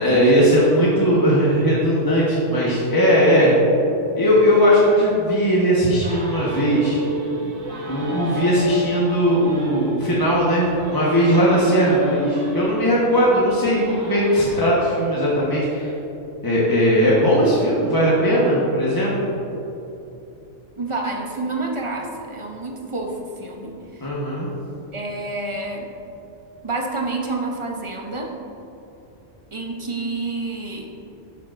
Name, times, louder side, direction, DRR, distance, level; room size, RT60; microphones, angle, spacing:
voice 1, 0.0-3.5 4.1-7.0 7.9-15.9 16.4-19.3 24.0-24.5, equal, 20° left, -7 dB, 1.1 m, -18 dB
sound 1, 6.0-14.6, equal, 90° right, 1.7 m, -32 dB
voice 2, 20.8-24.1 24.9-25.9 26.6-28.3 29.5-30.9, right 3 dB, 30° right, 1 dB, 0.6 m, -29 dB
11.0 x 6.7 x 2.5 m, 3.0 s
omnidirectional pair, 1.3 m